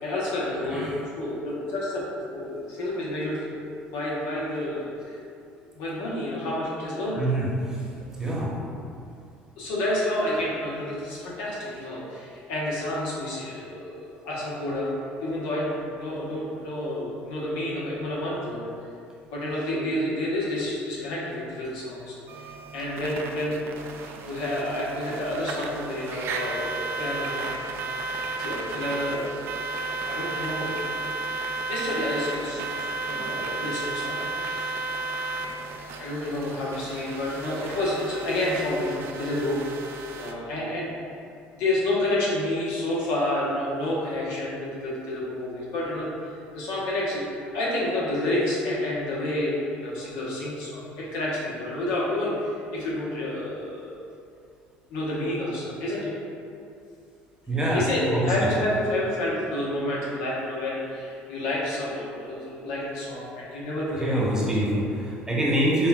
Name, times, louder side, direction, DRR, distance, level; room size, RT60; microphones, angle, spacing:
voice 1, 0.0-2.0 2.3-5.2 5.7-7.2 9.6-14.9 15.2-18.6 19.3-23.6 24.2-27.5 28.4-30.7 31.1-31.3 31.7-35.0 35.9-39.6 40.2-40.9 41.5-46.1 46.5-54.0 54.9-56.1 57.7-64.4, left 1 dB, 85° left, -6 dB, 0.9 m, -29 dB
voice 2, 7.2-7.5 8.2-8.5 33.1-33.3 57.5-57.8 58.1-58.3 64.0-65.9, right 1 dB, 15° right, -5 dB, 0.9 m, -25 dB
sound 1, 22.3-40.3, right 3 dB, 65° right, 0.3 m, -33 dB
5.5 x 2.2 x 2.3 m, 2.5 s
supercardioid pair, 85°, 5 cm